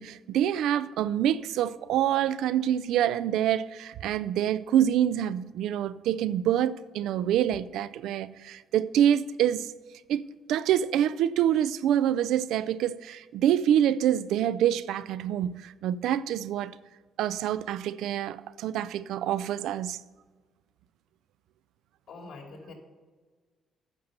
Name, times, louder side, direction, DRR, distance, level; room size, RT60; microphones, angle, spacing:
voice 1, 0.0-9.7 10.1-16.8 17.2-20.0, right 10 dB, 85° right, 0.4 m, -26 dB
voice 2, 22.1-22.7, left 3 dB, 55° left, 3.1 m, -44 dB
9.7 x 6.7 x 6.7 m
cardioid pair, 90°, 0 cm